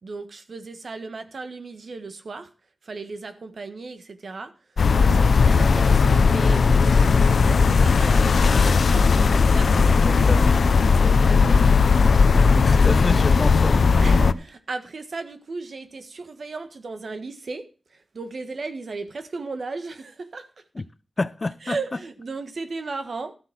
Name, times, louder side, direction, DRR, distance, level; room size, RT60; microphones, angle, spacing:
voice 1, 0.0-2.5 2.8-4.5 4.9-6.7 7.2-9.1 9.5-11.6 14.0-20.6 21.6-23.3, right 3 dB, 70° right, 1.5 m, -36 dB
sound 1, 4.8-14.3, left 5 dB, 90° left, 0.6 m, -17 dB
voice 2, 12.6-13.8 20.8-20.9 21.2-21.8, left 2 dB, 40° left, 0.6 m, -28 dB
13.0 x 8.1 x 5.9 m
wide cardioid pair, 105°, 0 cm